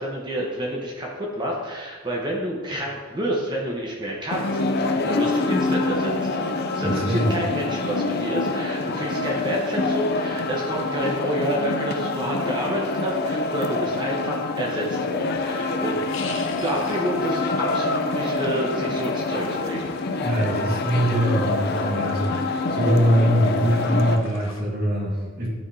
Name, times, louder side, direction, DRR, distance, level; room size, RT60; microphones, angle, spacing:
voice 1, 0.0-6.3 6.7-16.0 16.6-19.9, equal, 25° right, -2 dB, 1.0 m, -29 dB
sound 1, 4.3-24.2, left 3 dB, 55° left, 0.5 m, -26 dB
voice 2, 6.8-7.3 20.2-25.5, equal, 55° right, -5 dB, 2.1 m, -22 dB
sound 2, 15.2-24.6, left 5 dB, 85° left, 0.8 m, -43 dB
12.0 x 4.9 x 2.8 m, 1.4 s
head